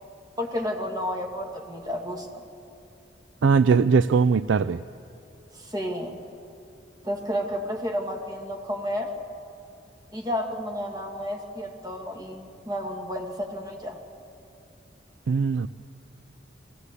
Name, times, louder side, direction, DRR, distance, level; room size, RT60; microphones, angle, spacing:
voice 1, 0.4-2.4 5.5-6.2 7.0-9.1 10.1-14.0, equal, 20° right, 2 dB, 2.1 m, -31 dB
voice 2, 3.4-4.8 15.3-15.7, right 5 dB, 80° right, 13 dB, 0.4 m, -20 dB
23.0 x 16.5 x 8.3 m, 2.6 s
head